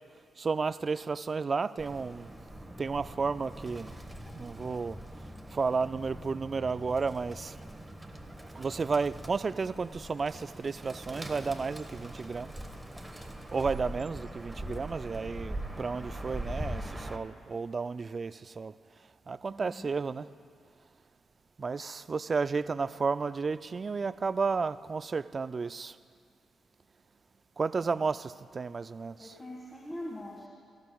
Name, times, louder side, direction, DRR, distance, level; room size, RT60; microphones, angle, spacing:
voice 1, 0.4-2.3 2.8-3.9 4.3-5.0 5.5-7.5 8.6-12.5 13.5-16.8 17.1-18.7 19.3-20.3 21.6-25.9 27.6-29.2, right 4 dB, 45° right, 16 dB, 0.3 m, -32 dB
Bird, 1.8-17.2, right 1 dB, 15° right, 1.3 m, -42 dB
voice 2, 19.5-19.9 27.7-28.1 29.2-30.5, left 1 dB, 25° left, -3 dB, 1.9 m, -43 dB
17.5 x 15.0 x 2.3 m, 2.1 s
hypercardioid pair, 40°, 0 cm